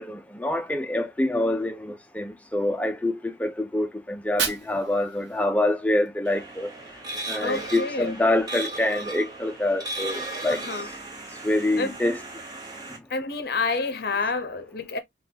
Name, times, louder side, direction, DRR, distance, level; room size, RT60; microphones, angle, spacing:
voice 1, 0.0-6.7 7.3-10.6 11.4-12.2, left 1 dB, 10° left, 0.4 m, -26 dB
Fire, 4.1-6.1, right 5 dB, 70° right, 0.9 m, -34 dB
sound 1, 6.2-13.0, right 2 dB, 20° right, 1.0 m, -36 dB
voice 2, 7.4-8.1 10.5-10.9 11.8-12.0 13.1-15.0, left 3 dB, 55° left, 0.6 m, -28 dB
3.8 x 2.3 x 2.7 m
head